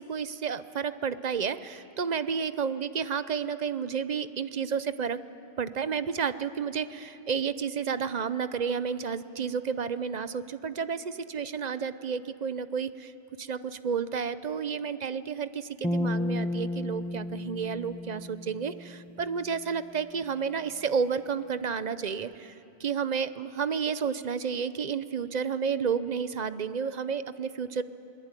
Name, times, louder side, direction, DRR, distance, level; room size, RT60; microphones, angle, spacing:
voice 1, 0.0-5.2 5.6-13.1 13.4-22.5 22.8-27.8, right 6 dB, 45° right, 13 dB, 0.7 m, -31 dB
sound 1, 15.8-19.2, left 1 dB, 5° left, 0.4 m, -32 dB
23.0 x 21.0 x 9.0 m, 2.8 s
omnidirectional pair, 1.2 m